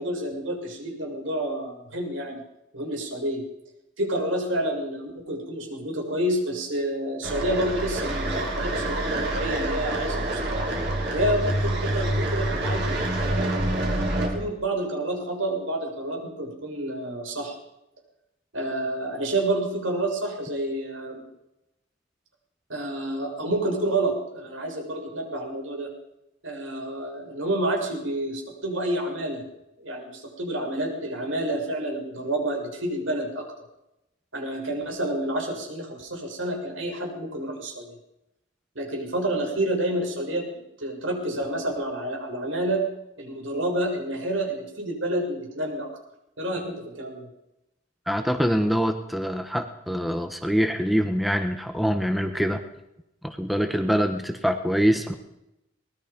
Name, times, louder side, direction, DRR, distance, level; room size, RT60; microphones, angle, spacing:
voice 1, 0.0-2.4 2.7-3.4 4.0-10.7 11.1-13.8 14.3-17.5 18.5-21.2 22.7-25.9 26.4-29.4 29.8-33.5 34.3-37.8 38.8-40.5 40.8-42.8 43.2-45.9 46.4-47.3, right 1 dB, 80° right, 1 dB, 6.9 m, -29 dB
sound 1, 7.2-14.3, right 1 dB, 55° right, 6.1 m, -27 dB
voice 2, 48.1-52.6 53.2-55.2, equal, ahead, 6 dB, 1.2 m, -24 dB
24.0 x 20.5 x 5.3 m, 0.86 s
head